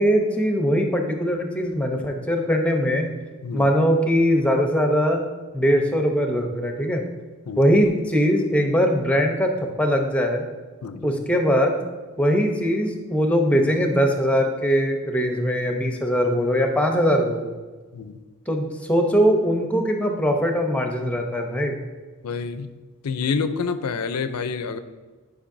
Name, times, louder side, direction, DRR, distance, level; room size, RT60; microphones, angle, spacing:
voice 1, 0.0-3.1 3.5-5.2 5.5-7.0 7.6-9.5 9.8-10.4 11.0-11.8 12.2-17.5 18.5-21.8, equal, 5° left, 3 dB, 0.7 m, -21 dB
voice 2, 22.2-22.7 23.0-24.8, left 5 dB, 90° left, 11 dB, 0.5 m, -28 dB
10.0 x 5.3 x 2.6 m, 1.3 s
head